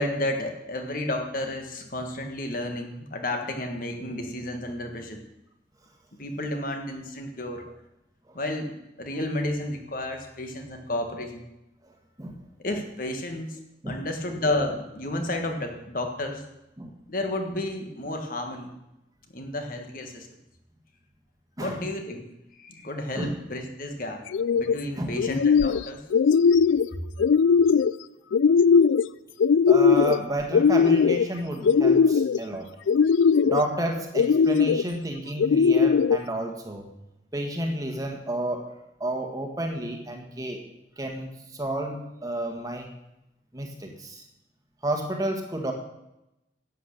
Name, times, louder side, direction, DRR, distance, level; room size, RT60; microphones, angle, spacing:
voice 1, 0.0-5.2 6.2-7.7 8.3-8.7 9.0-11.4 12.6-13.6 13.9-16.4 17.1-18.7 19.3-20.3 21.6-22.3 22.5-24.2 24.5-26.0, left 1 dB, 45° left, 4 dB, 1.6 m, -31 dB
voice 2, 11.8-12.4 13.8-14.0 16.8-16.9 21.6-21.8 23.2-23.4 24.9-25.2 29.7-32.7 33.3-36.9 37.3-38.7 39.0-40.6 41.0-42.9 43.5-44.2 44.8-45.7, right 1 dB, 20° right, 3 dB, 1.5 m, -31 dB
sound 1, 24.3-24.8 25.2-25.8 26.1-26.9 27.2-27.9 28.3-29.1 29.4-30.2 30.5-31.3 31.6-32.4 32.9-33.6 34.1-34.8 35.4-36.2, left 6 dB, 85° left, 0.4 m, -19 dB
11.5 x 8.5 x 6.6 m, 0.90 s
head